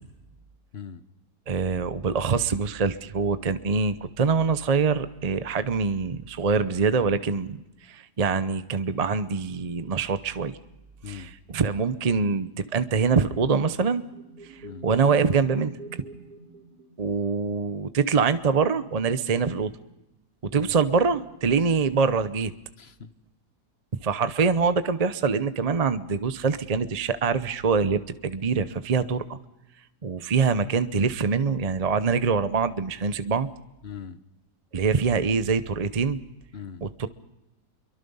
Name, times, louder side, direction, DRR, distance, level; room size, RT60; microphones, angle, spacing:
voice 1, 0.7-1.0 11.0-11.3 14.6-14.9 20.5-20.8 22.8-23.1 33.8-34.2 36.5-36.9, left 7 dB, 45° left, 12 dB, 1.2 m, -40 dB
voice 2, 1.5-7.6 7.9-10.6 11.1-14.0 14.8-15.7 17.0-19.7 20.5-22.5 24.0-29.4 30.0-33.5 34.7-36.2 36.8-37.1, right 5 dB, 35° right, 12 dB, 0.6 m, -24 dB
sound 1, 13.9-17.4, right 4 dB, 75° right, 6.8 m, -44 dB
27.0 x 23.5 x 5.5 m, 0.99 s
omnidirectional pair, 1.7 m